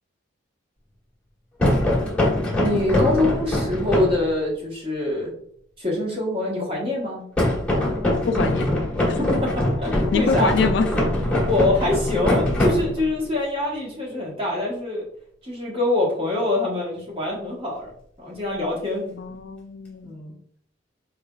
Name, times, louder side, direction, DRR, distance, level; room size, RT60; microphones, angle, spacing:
sound 1, 1.6-4.3 7.4-13.2, left 1 dB, 5° left, 1.2 m, -22 dB
voice 1, 2.6-5.3 5.8-7.3 9.2-10.5 11.5-15.0 15.4-17.9 18.2-19.2 20.0-20.3, left 2 dB, 25° right, -4 dB, 1.3 m, -25 dB
voice 2, 8.3-8.7 9.1-9.2 10.1-10.9 19.2-20.1, left 4 dB, 60° left, 8 dB, 0.3 m, -24 dB
4.3 x 3.2 x 2.4 m, 0.66 s
head